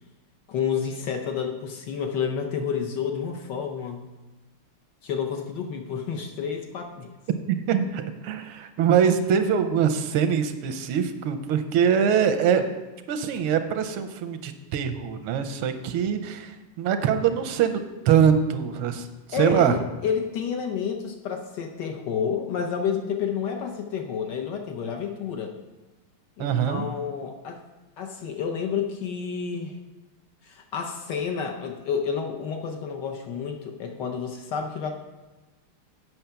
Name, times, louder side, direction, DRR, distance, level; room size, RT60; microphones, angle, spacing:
voice 1, 0.5-4.0 5.0-7.1 19.3-25.6 26.4-27.6 28.0-29.8 30.4-34.9, left 7 dB, 65° left, 3 dB, 1.1 m, -30 dB
voice 2, 7.7-12.6 13.1-17.8 18.1-19.1 19.4-19.7 26.4-26.9, right 8 dB, 85° right, 8 dB, 1.5 m, -23 dB
8.0 x 5.7 x 5.7 m, 1.2 s
omnidirectional pair, 2.4 m